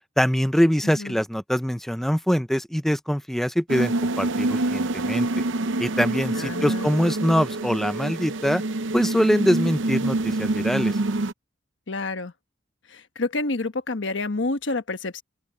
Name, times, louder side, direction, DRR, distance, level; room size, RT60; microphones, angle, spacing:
voice 1, 0.2-5.3 5.8-8.6 8.9-11.0, equal, ahead, 0.6 m, -23 dB
sound 1, 3.7-11.3, right 2 dB, 80° right, 0.7 m, -26 dB
voice 2, 6.3-6.9 11.9-12.3 12.9-15.2, left 3 dB, 75° left, 1.2 m, -28 dB
open air
head